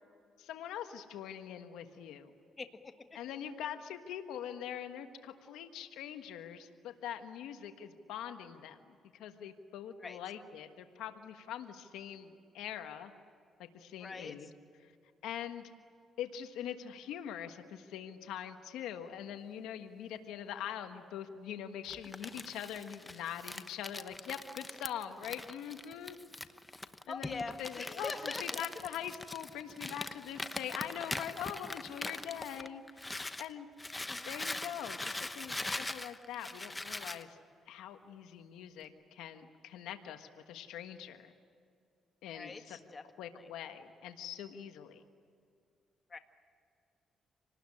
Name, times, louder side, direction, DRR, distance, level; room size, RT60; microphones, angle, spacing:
voice 1, 0.4-2.3 3.1-13.1 13.6-14.5 14.8-14.9 15.2-15.7 16.2-26.2 27.1-32.8 33.4-33.7 34.2-37.4 37.7-41.3 42.2-42.8 43.2-45.0, left 9 dB, 90° left, 7 dB, 1.4 m, -43 dB
voice 2, 2.6-3.1 10.0-10.2 14.0-14.5 27.1-28.8 34.1-34.3 42.3-43.5 46.1-46.2, left 4 dB, 30° left, 7 dB, 1.6 m, -44 dB
Crumpling crinkling, 21.9-33.5 33.8-37.2, left 2 dB, 15° left, 1.0 m, -42 dB
27.5 x 19.5 x 9.9 m, 2.4 s
cardioid pair, 90°, 0 cm